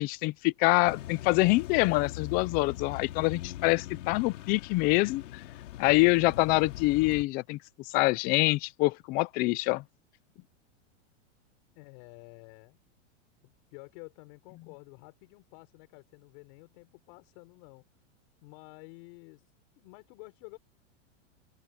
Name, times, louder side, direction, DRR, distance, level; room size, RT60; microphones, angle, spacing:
voice 1, 0.0-5.4 5.8-7.6 7.9-9.8, left 22 dB, 25° left, 0.5 m, -25 dB
sound 1, 0.9-7.2, left 13 dB, 75° left, 2.7 m, -41 dB
voice 2, 11.7-12.8 13.4-17.8 18.4-19.4 19.8-20.6, left 29 dB, 45° left, 5.7 m, -51 dB
open air
supercardioid pair, 160°, 37 cm